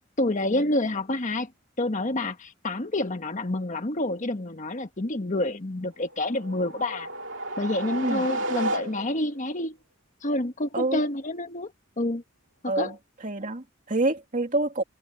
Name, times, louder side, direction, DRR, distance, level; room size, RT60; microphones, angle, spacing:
voice 1, 0.2-1.5 1.8-7.1 7.6-9.8 10.2-12.2 12.8-12.9, left 1 dB, 40° left, 1.4 m, -28 dB
sound 1, 6.1-9.4, right 1 dB, 65° right, 2.6 m, -32 dB
voice 2, 12.7-13.0 13.2-14.8, right 2 dB, 40° right, 2.7 m, -27 dB
head